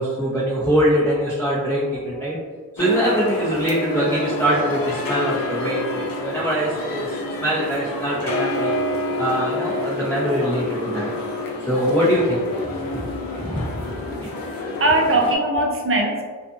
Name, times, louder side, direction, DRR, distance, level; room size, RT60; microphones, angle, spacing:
voice 1, 0.0-2.4 2.7-7.1 7.4-8.7 9.2-11.1 11.6-12.4 12.9-13.1 13.4-14.5, equal, 5° left, -9 dB, 0.6 m, -23 dB
sound 1, 2.8-15.4, left 1 dB, 80° left, 0.5 m, -28 dB
voice 2, 14.3-16.2, right 1 dB, 40° right, 1 dB, 0.5 m, -21 dB
2.5 x 2.4 x 2.5 m, 1.5 s
wide cardioid pair, 80°, 34 cm